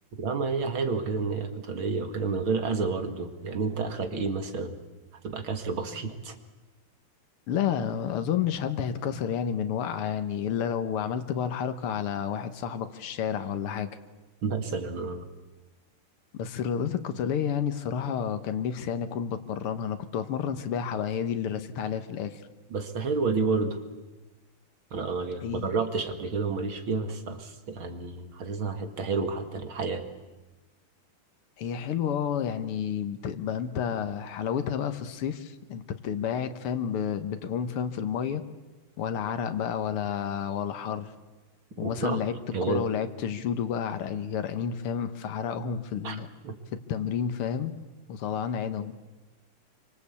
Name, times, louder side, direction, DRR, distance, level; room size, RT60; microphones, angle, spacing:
voice 1, 0.2-4.8 5.2-6.3 14.4-15.3 22.7-23.8 24.9-30.1 41.8-42.2 42.5-42.9 46.0-46.6, right 4 dB, 65° right, 7 dB, 2.8 m, -30 dB
voice 2, 7.5-13.9 16.3-22.4 25.4-25.8 31.6-38.4 39.0-41.1 41.8-42.3 42.7-46.3 46.7-47.7 48.1-49.0, left 8 dB, 85° left, 9 dB, 2.1 m, -30 dB
26.5 x 25.0 x 8.5 m, 1.1 s
omnidirectional pair, 2.4 m